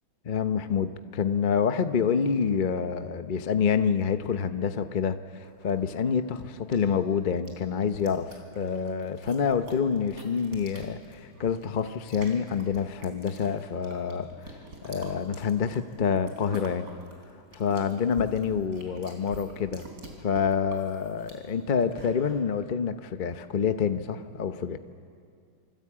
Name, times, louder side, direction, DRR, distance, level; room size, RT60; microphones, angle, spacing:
voice 1, 0.2-16.9 17.5-19.9 20.2-24.8, left 6 dB, 55° left, 9 dB, 0.5 m, -27 dB
sound 1, 5.4-22.4, right 1 dB, 45° right, 4.2 m, -47 dB
27.0 x 24.0 x 8.6 m, 2.4 s
omnidirectional pair, 2.2 m